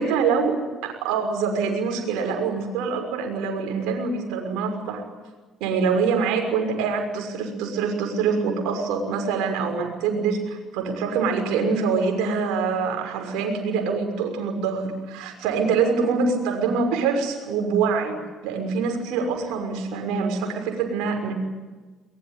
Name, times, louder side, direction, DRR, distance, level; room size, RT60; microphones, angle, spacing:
voice 1, 0.0-5.0 5.6-18.2 18.4-21.3, right 5 dB, 75° right, 4 dB, 6.1 m, -25 dB
23.0 x 22.0 x 9.3 m, 1.3 s
hypercardioid pair, 60°, 0 cm